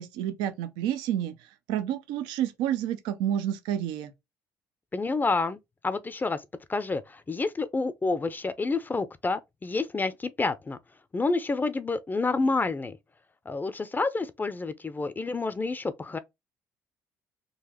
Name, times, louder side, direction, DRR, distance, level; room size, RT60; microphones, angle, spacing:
voice 1, 0.0-1.3 1.7-4.1, right 11 dB, 85° right, 0.5 m, -29 dB
voice 2, 4.9-5.6 5.8-6.4 6.7-10.8 11.1-13.0 13.5-16.2, left 3 dB, 25° left, 0.5 m, -29 dB
3.9 x 2.4 x 2.9 m
supercardioid pair, 75°, 8 cm